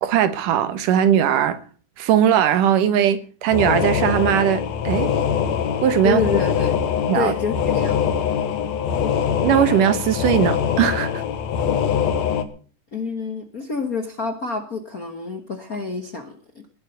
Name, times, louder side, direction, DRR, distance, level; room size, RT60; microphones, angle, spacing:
voice 1, 0.0-1.6 2.0-5.1 5.8-6.2 7.1-7.3 9.4-11.2, right 9 dB, 85° right, 2.9 m, -19 dB
sound 1, 3.5-12.4, left 7 dB, 65° left, 2.4 m, -23 dB
voice 2, 6.0-6.8 7.1-8.1 12.9-16.6, left 5 dB, 45° left, 1.2 m, -27 dB
20.0 x 8.3 x 6.8 m
omnidirectional pair, 3.6 m